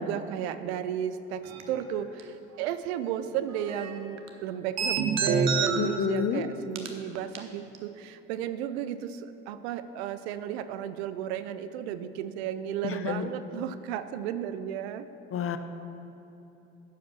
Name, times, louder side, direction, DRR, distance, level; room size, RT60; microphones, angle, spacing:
voice 1, 0.0-15.1, right 10 dB, 85° right, 12 dB, 0.5 m, -34 dB
sound 1, 1.5-1.9 2.2-2.3 3.4-3.9 4.2-4.3 4.8-5.8 6.2-6.3 6.7-6.9 7.1-7.4 7.7-7.8, right 5 dB, 55° right, 1.0 m, -27 dB
voice 2, 5.8-6.5 12.8-13.3 15.3-15.6, left 7 dB, 45° left, 9 dB, 0.7 m, -29 dB
10.0 x 5.1 x 6.1 m, 3.0 s
hypercardioid pair, 65°, 31 cm